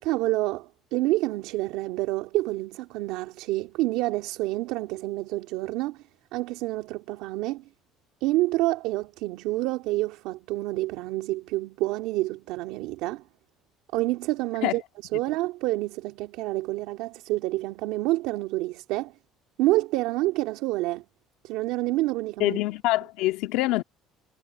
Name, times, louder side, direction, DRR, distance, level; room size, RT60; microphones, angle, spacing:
voice 1, 0.0-6.0 6.3-7.6 8.2-13.2 13.9-14.8 15.1-19.1 19.6-21.0 21.4-22.6, right 18 dB, 80° right, 2.4 m, -28 dB
voice 2, 22.4-23.8, left 18 dB, 80° left, 1.8 m, -25 dB
supercardioid pair, 90°, 0 cm